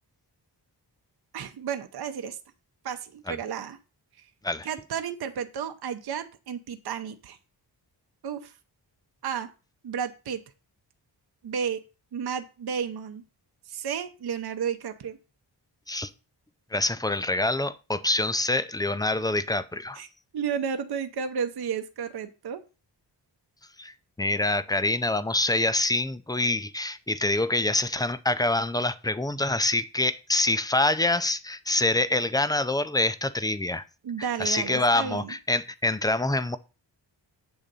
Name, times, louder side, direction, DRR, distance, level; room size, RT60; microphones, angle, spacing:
voice 1, 1.3-2.4 2.8-3.8 4.6-7.4 8.2-8.5 9.2-9.5 9.8-10.4 11.4-11.8 12.1-13.2 13.7-15.2 20.0-20.1 20.3-22.6 34.0-35.3, right 7 dB, 60° right, 0.8 m, -32 dB
voice 2, 16.7-20.0 23.8-33.8 34.2-36.6, left 2 dB, 10° left, 0.3 m, -26 dB
8.8 x 3.8 x 6.7 m
wide cardioid pair, 170°, 44 cm